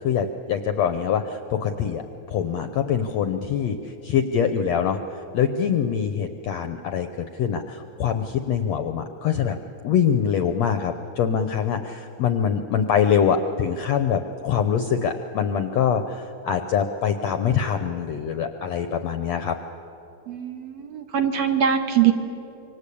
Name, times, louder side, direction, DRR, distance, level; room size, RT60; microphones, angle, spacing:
voice 1, 0.0-9.6 9.8-19.6, left 7 dB, 70° left, 8 dB, 1.6 m, -24 dB
voice 2, 20.3-22.1, right 9 dB, 55° right, 6 dB, 2.1 m, -22 dB
26.5 x 25.0 x 8.6 m, 3.0 s
omnidirectional pair, 4.1 m